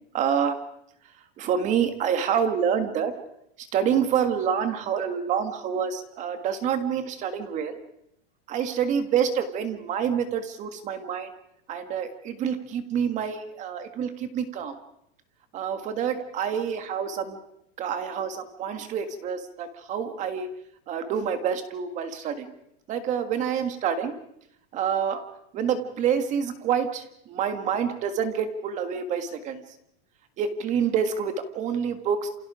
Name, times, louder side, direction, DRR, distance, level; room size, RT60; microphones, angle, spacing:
voice 1, 0.1-0.6 1.4-3.1 3.6-7.8 8.5-11.3 11.7-14.8 15.5-17.4 17.8-20.5 20.9-22.5 22.9-24.1 24.7-25.2 25.5-29.6 30.4-32.3, right 7 dB, 25° right, 9 dB, 1.7 m, -27 dB
28.5 x 27.5 x 5.0 m, 0.76 s
supercardioid pair, 180°, 30 cm